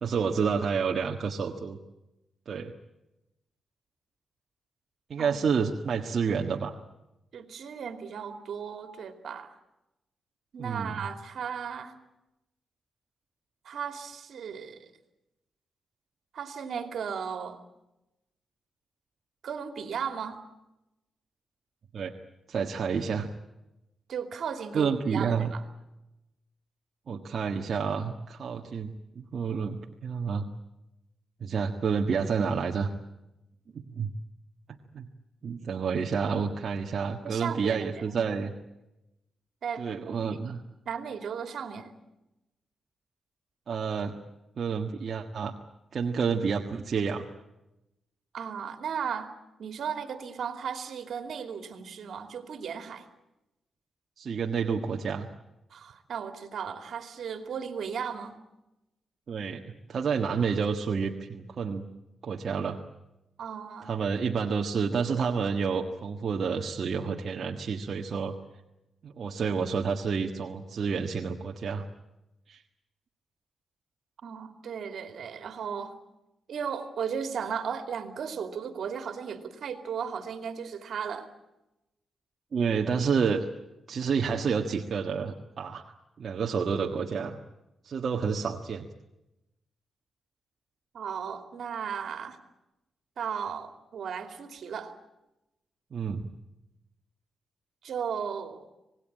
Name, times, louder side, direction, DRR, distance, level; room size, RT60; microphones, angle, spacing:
voice 1, 0.0-1.8 2.5-2.7 5.1-6.8 10.6-11.0 21.9-22.1 22.5-23.3 24.7-25.5 27.1-30.5 31.4-32.9 33.7-34.1 34.9-35.1 35.4-38.5 39.8-40.6 43.7-44.2 44.6-45.5 45.9-47.2 54.2-55.3 59.3-59.6 59.9-61.8 62.2-62.8 63.8-68.3 69.0-71.8 72.5-72.6 82.5-83.4 83.9-87.4 87.8-88.8 95.9-96.3, right 6 dB, 55° right, 1 dB, 1.6 m, -29 dB
voice 2, 7.3-9.5 10.5-11.9 13.6-14.9 16.3-17.6 19.4-20.4 24.1-25.6 37.2-38.0 39.6-40.4 40.9-41.9 48.3-49.3 49.6-53.0 55.7-58.4 63.4-63.9 74.2-75.9 76.5-81.3 90.9-92.4 93.2-94.9 97.8-98.7, right 7 dB, 70° right, 7 dB, 2.7 m, -36 dB
26.5 x 19.5 x 8.8 m, 0.94 s
cardioid pair, 110°, 0 cm